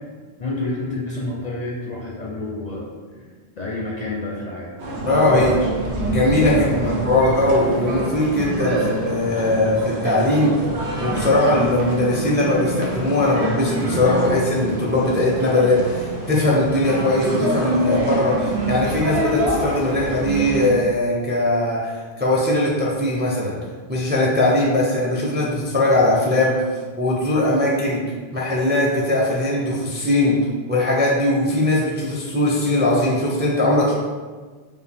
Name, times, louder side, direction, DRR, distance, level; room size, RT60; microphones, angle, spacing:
voice 1, 0.4-2.9 3.6-4.7 5.0-5.7 6.5-7.0, left 2 dB, 50° left, -3 dB, 0.6 m, -29 dB
sound 1, 4.8-20.7, right 1 dB, 80° right, 1.1 m, -26 dB
voice 2, 5.0-5.5 6.1-10.6 11.0-23.6 23.9-26.5 27.0-28.0 28.3-30.4 30.7-33.9, left 1 dB, 15° right, -4 dB, 0.5 m, -20 dB
4.9 x 2.5 x 3.4 m, 1.5 s
omnidirectional pair, 1.1 m